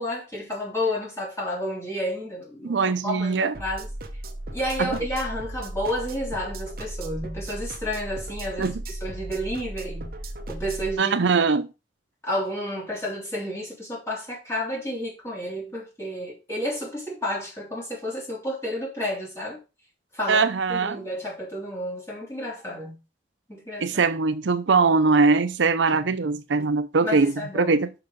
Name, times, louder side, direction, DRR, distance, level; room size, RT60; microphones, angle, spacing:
voice 1, 0.0-3.9 4.5-10.1 10.5-11.1 12.2-19.6 20.1-20.4 20.7-23.0 23.5-24.1 27.0-27.8, equal, 15° left, 3.2 m, -31 dB
voice 2, 2.6-3.5 4.8-4.9 8.6-8.8 11.0-11.7 20.3-21.0 23.8-27.9, right 4 dB, 85° right, 0.6 m, -21 dB
sound 1, 3.5-10.9, right 1 dB, 55° right, 1.1 m, -36 dB
5.9 x 5.7 x 5.2 m
head